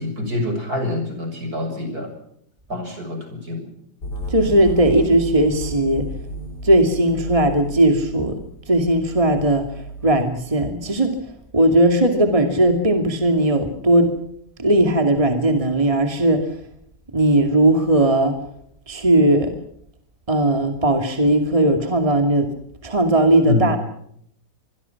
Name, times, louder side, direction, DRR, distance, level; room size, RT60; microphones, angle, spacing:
voice 1, 0.0-2.1 2.7-3.7 23.5-23.7, left 2 dB, 65° right, 6 dB, 7.1 m, -26 dB
sound 1, 4.0-10.8, right 1 dB, 85° left, 6.4 m, -33 dB
voice 2, 4.3-6.1 6.6-8.3 8.7-9.7 10.0-11.2 11.5-14.1 14.6-16.4 17.1-18.4 18.9-19.5 20.3-22.5 22.8-23.8, right 1 dB, 20° right, 6 dB, 2.5 m, -17 dB
26.0 x 22.5 x 5.9 m, 0.70 s
omnidirectional pair, 1.7 m